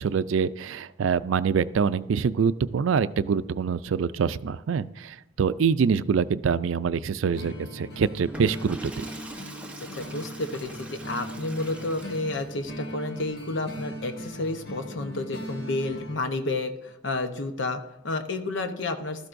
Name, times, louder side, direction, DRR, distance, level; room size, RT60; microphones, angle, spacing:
voice 1, 0.0-9.0, right 6 dB, 90° right, 15 dB, 0.4 m, -25 dB
sound 1, 7.3-16.1, equal, 55° left, 1.4 m, -39 dB
Water / Toilet flush, 8.2-12.7, right 1 dB, 5° right, 0.8 m, -43 dB
voice 2, 9.8-19.3, left 2 dB, 80° left, 7 dB, 0.8 m, -31 dB
15.5 x 13.0 x 2.6 m, 0.86 s
head